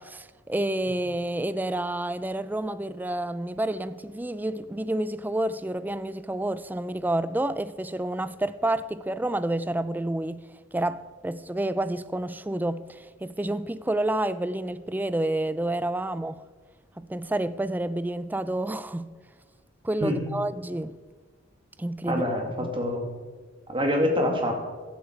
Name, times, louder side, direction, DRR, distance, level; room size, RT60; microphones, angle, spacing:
voice 1, 0.0-10.5 10.7-16.4 17.0-19.1 19.8-21.0 21.8-22.2, right 1 dB, 10° right, 0.4 m, -29 dB
voice 2, 22.0-23.1 23.7-24.5, left 1 dB, 25° right, 2.3 m, -25 dB
15.0 x 11.5 x 4.5 m
head